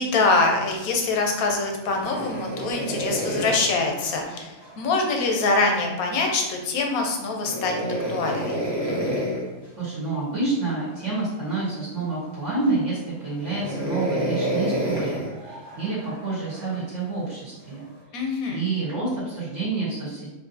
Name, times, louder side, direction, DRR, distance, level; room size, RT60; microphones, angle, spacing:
voice 1, 0.0-7.8 8.1-8.6 18.1-18.6, left 3 dB, 85° left, 2 dB, 1.2 m, -24 dB
sound 1, 1.8-5.1 7.4-9.5 10.6-11.1 11.6-11.7 12.4-12.9 13.4-16.8 17.7-18.0, right 1 dB, 20° right, 0.8 m, -29 dB
voice 2, 9.8-17.8 18.5-20.3, right 3 dB, 55° right, -9 dB, 1.5 m, -28 dB
4.6 x 2.6 x 2.7 m, 1.1 s
omnidirectional pair, 1.5 m